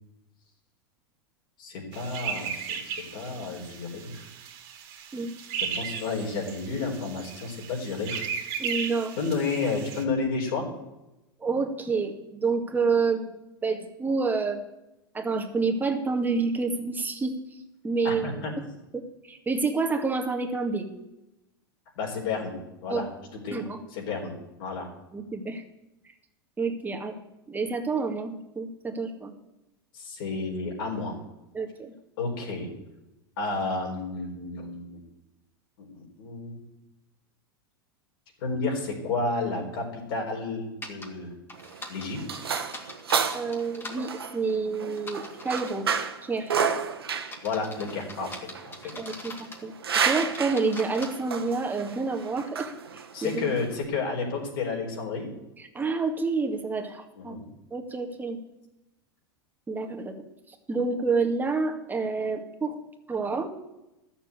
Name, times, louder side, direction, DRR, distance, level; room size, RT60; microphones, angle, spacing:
voice 1, 1.6-4.3 5.6-8.2 9.2-10.7 18.0-18.5 22.0-22.5 22.8-23.1 23.4-23.6 23.9-24.3 24.6-24.9 29.9-31.2 32.2-32.7 33.4-35.0 35.9-36.6 38.4-41.3 41.9-42.4 47.4-48.7 53.1-55.3 57.2-57.4, left 4 dB, 65° left, -1 dB, 4.2 m, -31 dB
sound 1, 1.9-10.0, right 7 dB, 50° right, 2.2 m, -36 dB
voice 2, 8.6-9.2 11.4-14.6 15.1-17.4 17.8-18.3 18.9-20.9 22.9-23.0 23.5-23.8 25.1-25.6 26.6-27.1 27.5-29.3 31.5-31.9 43.3-45.9 46.2-46.5 49.0-49.3 49.6-53.6 55.6-58.4 59.7-60.1 60.7-62.8 63.1-63.5, right 4 dB, 15° right, 4 dB, 2.0 m, -28 dB
sound 2, 40.8-41.1 41.5-44.0 45.0-45.8 46.4-46.7 47.2-49.6 49.9-51.1, left 2 dB, 20° left, 2.4 m, -42 dB
sound 3, 41.5-53.8, right 6 dB, 85° right, 1.2 m, -31 dB
13.0 x 7.1 x 8.1 m, 0.95 s
hypercardioid pair, 90°, 12 cm